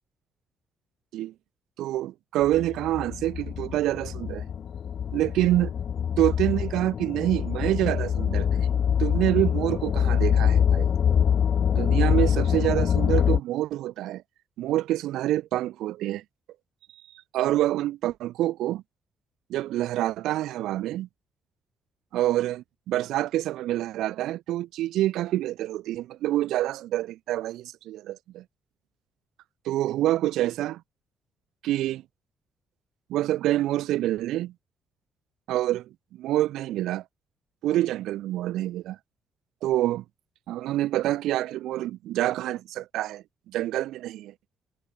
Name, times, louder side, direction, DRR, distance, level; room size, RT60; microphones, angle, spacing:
voice 1, 1.8-4.4 5.1-5.7 6.2-8.7 9.0-10.9 11.8-14.2 14.6-16.2 17.3-18.8 19.5-21.1 22.1-28.4 29.6-30.8 31.6-32.0 33.1-34.5 35.5-37.0 37.6-39.0 39.6-40.0 40.5-44.3, right 14 dB, 85° right, 1.4 m, -27 dB
sound 1, 2.4-13.4, left 8 dB, 55° left, 1.3 m, -24 dB
cardioid pair, 90°, 0 cm